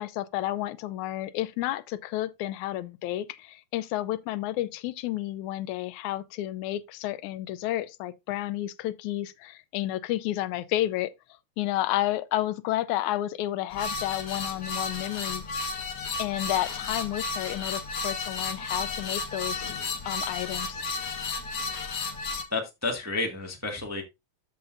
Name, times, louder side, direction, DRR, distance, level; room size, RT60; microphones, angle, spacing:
voice 1, 0.0-11.1 11.6-15.4 16.2-19.7 20.1-20.8, left 14 dB, 85° left, 2.0 m, -31 dB
sound 1, 13.7-22.4, left 4 dB, 50° left, 1.3 m, -33 dB
voice 2, 22.5-24.0, left 3 dB, 10° right, 0.8 m, -30 dB
13.5 x 5.4 x 2.6 m
omnidirectional pair, 3.4 m